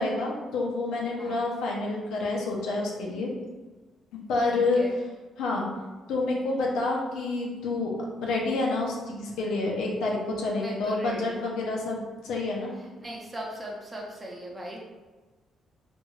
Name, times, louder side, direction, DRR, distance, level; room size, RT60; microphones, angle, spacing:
voice 1, 0.0-3.3 4.3-4.8 5.4-5.7 6.1-7.9 8.2-12.0 12.2-12.7, left 3 dB, 85° left, -2 dB, 0.6 m, -28 dB
voice 2, 4.5-4.9 10.5-11.4 12.8-14.8, right 1 dB, 25° right, -2 dB, 0.7 m, -39 dB
2.5 x 2.3 x 3.0 m, 1.2 s
cardioid pair, 90°, 0 cm